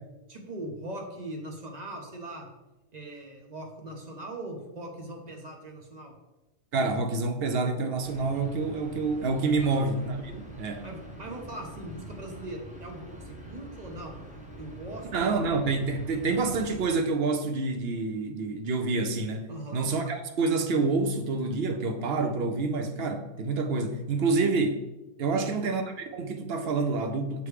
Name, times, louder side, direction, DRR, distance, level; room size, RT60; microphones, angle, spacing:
voice 1, 0.3-2.5 2.9-6.1 9.6-9.9 10.8-14.2 14.6-15.4 19.5-19.9 25.3-25.6, right 1 dB, 35° right, 0.9 m, -40 dB
voice 2, 6.7-10.9 15.1-24.8 25.2-27.5, right 3 dB, 60° right, 0.7 m, -28 dB
sound 1, 8.0-16.8, right 1 dB, 5° right, 0.8 m, -45 dB
6.9 x 3.3 x 4.7 m
omnidirectional pair, 1.4 m